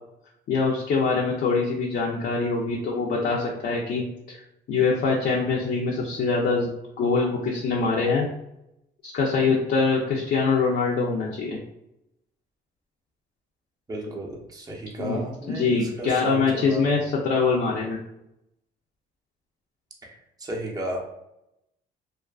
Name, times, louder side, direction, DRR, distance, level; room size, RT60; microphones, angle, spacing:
voice 1, 0.5-4.0 4.7-6.7 7.0-8.3 9.0-11.6 15.0-15.2 15.5-18.0, left 4 dB, 55° left, -2 dB, 0.5 m, -24 dB
voice 2, 13.9-16.8 20.0-21.0, right 1 dB, 20° right, -1 dB, 0.6 m, -34 dB
2.5 x 2.3 x 2.3 m, 0.85 s
cardioid pair, 90°, 20 cm